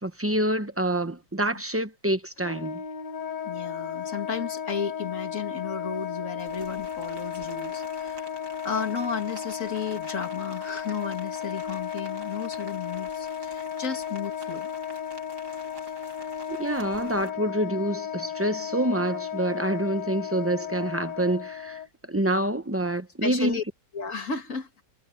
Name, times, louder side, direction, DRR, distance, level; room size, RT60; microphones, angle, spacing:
voice 1, 0.0-2.8 16.5-21.8 22.1-23.6, right 1 dB, 20° right, 0.4 m, -27 dB
Wind instrument woodwind instrument, 2.4-21.9, left 8 dB, 75° left, 2.0 m, -34 dB
voice 2, 3.4-14.7 23.2-23.6 23.9-24.7, left 6 dB, 45° left, 2.5 m, -33 dB
Rain, 6.4-17.3, right 3 dB, 60° right, 4.2 m, -48 dB
omnidirectional pair, 2.0 m